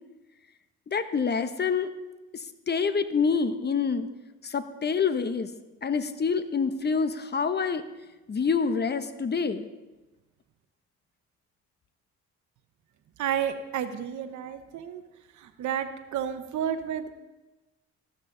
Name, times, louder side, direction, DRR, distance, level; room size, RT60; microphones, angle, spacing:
voice 1, 0.9-1.9 2.7-4.1 4.4-5.5 5.8-7.8 8.3-9.7, left 5 dB, 35° left, 11 dB, 0.9 m, -26 dB
voice 2, 13.2-15.0 15.3-17.1, right 9 dB, 75° right, 9 dB, 0.9 m, -31 dB
14.0 x 12.0 x 3.8 m, 1.1 s
cardioid pair, 90°, 30 cm